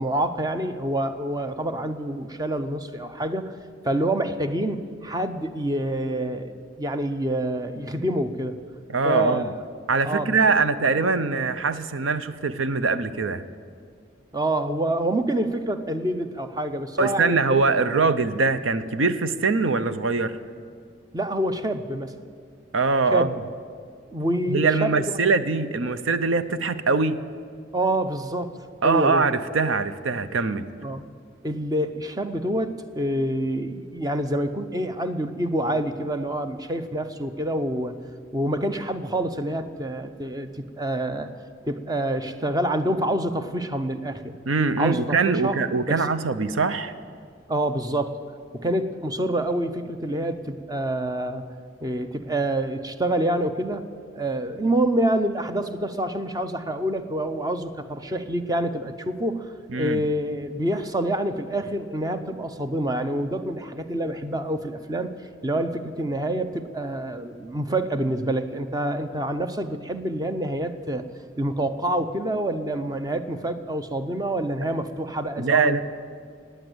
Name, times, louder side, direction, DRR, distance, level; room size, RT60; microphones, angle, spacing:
voice 1, 0.0-3.5 3.8-8.6 9.0-9.4 10.0-10.4 14.3-17.6 21.1-22.1 23.1-23.3 24.1-25.0 27.7-28.5 28.8-29.3 30.8-31.0 31.4-38.0 38.3-41.3 41.6-44.4 44.8-45.6 45.9-46.1 47.5-48.2 48.5-51.4 51.8-53.9 54.1-65.1 65.4-71.1 71.4-75.8, right 1 dB, 20° right, 8 dB, 0.7 m, -27 dB
voice 2, 8.9-9.5 9.9-13.4 17.0-20.4 22.7-23.3 24.5-27.2 28.8-30.7 44.5-46.9 59.7-60.0 75.4-75.8, right 4 dB, 85° right, 12 dB, 0.7 m, -22 dB
18.5 x 9.1 x 8.0 m, 2.2 s
head